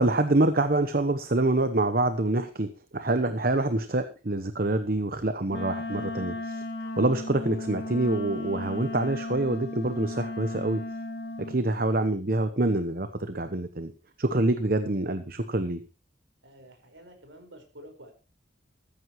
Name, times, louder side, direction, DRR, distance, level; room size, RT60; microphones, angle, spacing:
voice 1, 0.0-6.6 7.0-10.8 11.4-13.9 14.2-15.8, right 2 dB, 50° right, 9 dB, 1.0 m, -26 dB
Wind instrument woodwind instrument, 5.5-11.6, left 1 dB, 60° left, 2.4 m, -35 dB
voice 2, 16.4-18.1, equal, 80° right, 5 dB, 5.0 m, -49 dB
14.5 x 14.0 x 3.1 m, 0.33 s
head